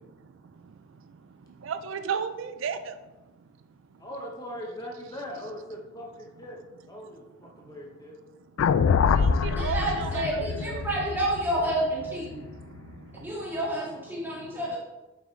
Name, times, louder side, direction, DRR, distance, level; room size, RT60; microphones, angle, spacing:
voice 1, 0.6-3.0 7.5-7.8 9.0-11.2 12.3-13.6 13.8-14.8, right 6 dB, 70° right, 10 dB, 0.4 m, -37 dB
voice 2, 4.0-6.6 6.9-8.1 9.5-9.6, equal, 20° left, -1 dB, 0.8 m, -40 dB
sound 1, 8.6-12.9, left 6 dB, 80° left, 0.3 m, -25 dB
voice 3, 9.6-12.4 13.1-14.8, right 1 dB, 10° right, -5 dB, 1.9 m, -29 dB
7.1 x 5.8 x 3.1 m, 1.1 s
head